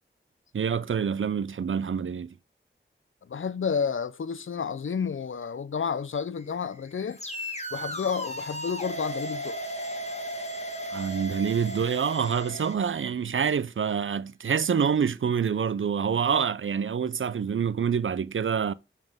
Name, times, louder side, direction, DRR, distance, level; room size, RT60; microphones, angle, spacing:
voice 1, 0.5-2.3 10.9-18.7, right 7 dB, 75° right, 0.5 m, -26 dB
voice 2, 3.3-7.2 7.7-9.6, left 6 dB, 75° left, 0.5 m, -30 dB
sound 1, 6.4-12.8, right 1 dB, 35° left, 1.7 m, -36 dB
Telephone, 7.1-13.9, left 2 dB, 50° left, 3.9 m, -52 dB
7.1 x 5.8 x 3.5 m
wide cardioid pair, 50°, 21 cm